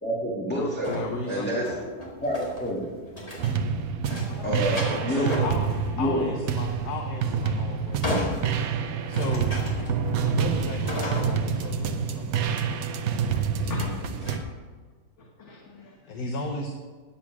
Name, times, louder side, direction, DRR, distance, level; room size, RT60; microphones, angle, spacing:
voice 1, 0.0-0.9 1.3-1.8 2.2-3.0 4.4-5.6 6.0-6.3, equal, 5° left, -6 dB, 1.6 m, -28 dB
voice 2, 0.6-1.7 5.1-5.6 6.0-8.5 9.1-9.5 10.2-12.8 13.3-14.4 16.1-16.8, left 2 dB, 80° left, 2 dB, 1.5 m, -35 dB
sound 1, 0.8-3.8 4.0-5.9 6.2-6.3 7.2-11.7 12.8-13.4 13.8-14.4, left 1 dB, 25° left, 2.1 m, -35 dB
sound 2, 3.4-14.4, right 6 dB, 70° right, 1.1 m, -28 dB
voice 3, 4.1-4.6 5.4-5.5 10.0-10.4 13.6-13.8 15.2-16.2, left 2 dB, 50° left, -1 dB, 1.5 m, -39 dB
10.0 x 7.3 x 6.0 m, 1.5 s
omnidirectional pair, 1.7 m